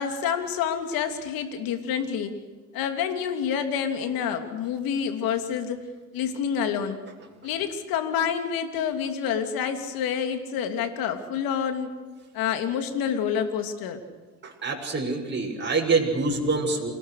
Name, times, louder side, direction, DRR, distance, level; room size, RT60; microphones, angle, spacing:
voice 1, 0.0-2.3 2.7-5.8 6.1-7.0 7.4-11.9 12.3-14.0, left 7 dB, 65° left, 7 dB, 3.0 m, -28 dB
voice 2, 14.4-16.9, right 3 dB, 30° right, -1 dB, 7.1 m, -25 dB
28.0 x 20.0 x 6.6 m, 1.3 s
hypercardioid pair, 70°, 37 cm